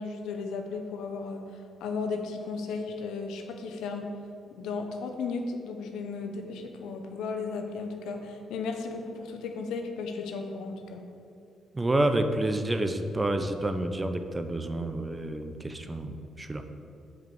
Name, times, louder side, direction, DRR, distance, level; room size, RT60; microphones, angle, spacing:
voice 1, 0.0-4.1 4.6-11.0, left 4 dB, 85° left, 4 dB, 0.9 m, -35 dB
voice 2, 11.7-16.6, right 1 dB, 20° right, 7 dB, 0.7 m, -29 dB
7.8 x 4.8 x 7.0 m, 2.4 s
cardioid pair, 90°, 0 cm